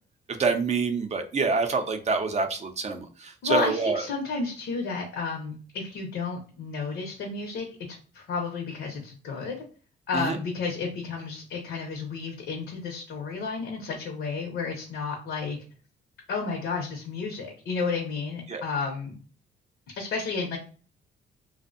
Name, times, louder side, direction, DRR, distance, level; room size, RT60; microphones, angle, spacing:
voice 1, 0.4-4.0 10.1-10.4 18.5-18.6, right 4 dB, 35° right, 6 dB, 0.5 m, -26 dB
voice 2, 3.4-7.7 8.1-9.6 10.1-15.6 16.3-19.1 19.9-20.6, left 4 dB, 75° left, 1 dB, 0.7 m, -31 dB
2.5 x 2.1 x 2.4 m, 0.39 s
cardioid pair, 90°, 20 cm